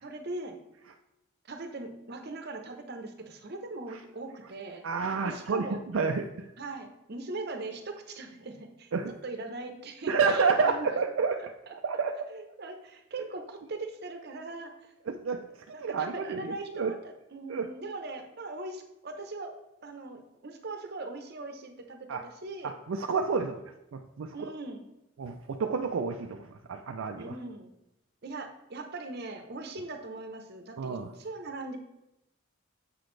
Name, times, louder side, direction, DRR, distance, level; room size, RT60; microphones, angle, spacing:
voice 1, 0.0-0.6 1.4-4.8 5.2-5.8 6.6-8.9 9.2-10.9 11.7-11.8 12.3-15.2 15.7-19.6 19.8-22.7 24.3-24.9 27.2-27.7 28.2-31.8, right 2 dB, 50° right, 6 dB, 0.8 m, -40 dB
voice 2, 4.8-5.6 5.9-6.5 8.9-9.1 10.1-11.4 11.7-12.1 15.1-15.4 15.7-16.9 17.5-17.7 22.1-22.2 22.6-23.6 23.9-24.5 25.2-27.3 30.8-31.1, right 5 dB, 70° right, 4 dB, 0.4 m, -29 dB
7.4 x 6.1 x 3.2 m, 0.90 s
head